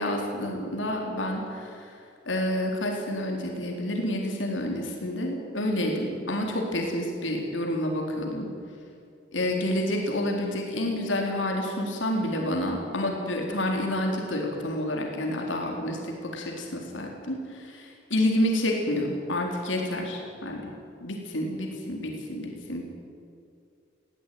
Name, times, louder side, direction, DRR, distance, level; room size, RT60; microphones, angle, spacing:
voice 1, 0.0-2.0 2.3-8.5 9.3-20.6 21.0-22.8, left 1 dB, 85° left, 1 dB, 4.0 m, -29 dB
21.0 x 16.5 x 9.5 m, 2.4 s
head